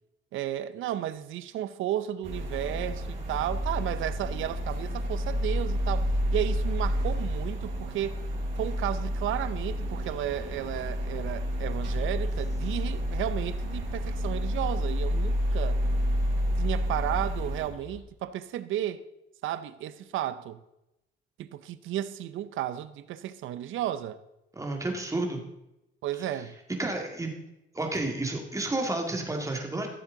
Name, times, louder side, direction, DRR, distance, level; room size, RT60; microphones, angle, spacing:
voice 1, 0.3-8.2 8.6-15.8 16.6-19.0 19.4-20.6 21.4-24.2 26.0-26.5, right 12 dB, 85° right, 0.6 m, -33 dB
sound 1, 2.2-17.7, equal, 55° right, 4.0 m, -30 dB
sound 2, 9.5-18.0, left 3 dB, 35° left, 1.7 m, -47 dB
voice 2, 24.5-25.4 26.8-27.3 27.7-29.9, right 2 dB, 15° right, 2.1 m, -31 dB
14.5 x 7.3 x 3.9 m
cardioid pair, 90°, 20 cm